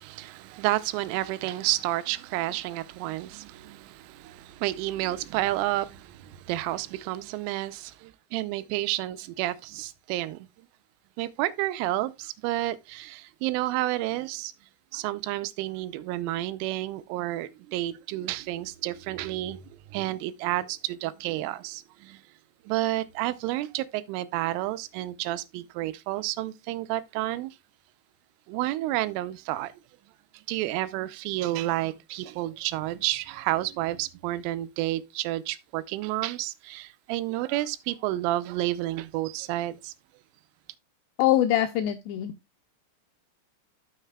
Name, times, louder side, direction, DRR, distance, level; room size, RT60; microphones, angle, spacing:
voice 1, 0.0-10.5 11.2-14.5 14.9-22.2 22.7-27.6 28.5-29.7 30.3-39.9, right 16 dB, 90° right, 3.2 m, -30 dB
voice 2, 41.2-42.3, left 12 dB, 85° left, 2.5 m, -23 dB
13.0 x 6.4 x 2.3 m
omnidirectional pair, 5.6 m